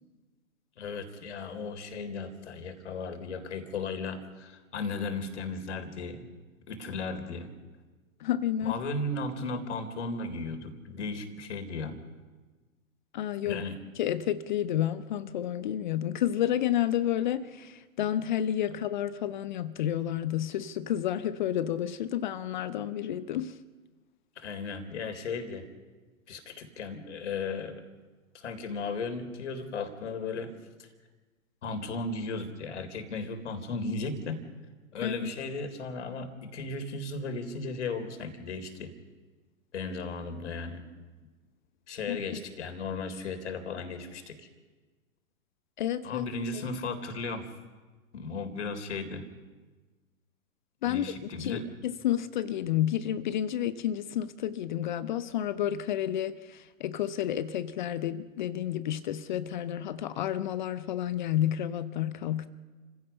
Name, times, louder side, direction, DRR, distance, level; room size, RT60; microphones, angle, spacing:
voice 1, 0.8-6.3 6.7-7.5 8.6-12.0 13.5-13.8 24.4-25.6 26.3-27.8 28.3-30.5 30.8-30.9 31.6-34.5 34.9-38.9 39.7-40.8 41.9-44.5 46.0-47.5 48.1-49.2 50.8-51.7, left 3 dB, 55° left, 3.7 m, -35 dB
voice 2, 8.2-8.7 13.1-13.6 14.0-23.6 35.0-35.3 42.1-42.4 45.8-46.2 50.8-62.5, left 11 dB, 35° left, 0.8 m, -30 dB
29.5 x 16.0 x 5.7 m
figure-of-eight pair, 125°, 42 cm